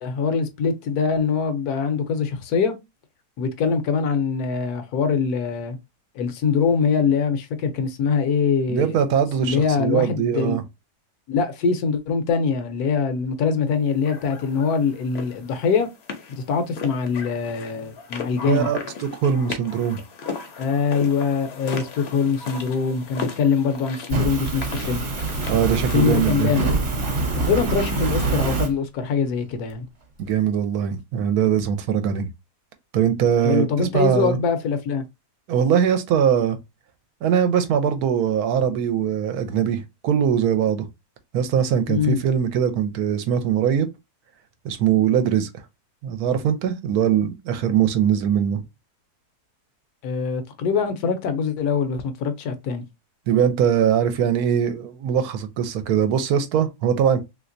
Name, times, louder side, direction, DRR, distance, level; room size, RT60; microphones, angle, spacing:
voice 1, 0.0-2.7 3.4-5.8 6.1-9.0 9.4-10.6 11.3-15.9 16.3-18.7 20.6-25.0 25.9-26.7 27.4-29.8 33.4-35.0 41.9-42.2 50.0-52.8, left 5 dB, 80° left, 1.1 m, -23 dB
voice 2, 8.7-10.6 18.4-18.8 19.1-20.0 25.5-26.5 30.2-32.3 32.9-34.4 35.5-36.6 37.2-40.9 41.3-43.9 44.6-45.5 46.0-48.6 53.3-57.2, right 8 dB, 75° right, 1.1 m, -21 dB
sound 1, 14.0-28.1, left 5 dB, 55° left, 0.7 m, -37 dB
Fire, 24.1-28.7, right 3 dB, 50° right, 1.1 m, -24 dB
3.2 x 2.8 x 2.5 m
omnidirectional pair, 1.7 m